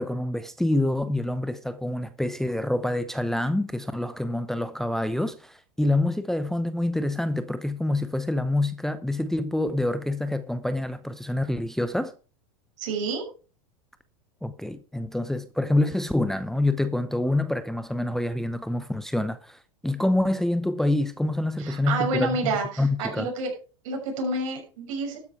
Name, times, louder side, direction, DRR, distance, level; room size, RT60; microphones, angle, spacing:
voice 1, 0.0-12.1 14.4-23.3, left 1 dB, ahead, 0.7 m, -26 dB
voice 2, 12.8-13.3 21.6-23.5 23.8-25.2, right 3 dB, 65° right, 6.3 m, -29 dB
12.5 x 9.6 x 4.6 m
supercardioid pair, 125°, 17 cm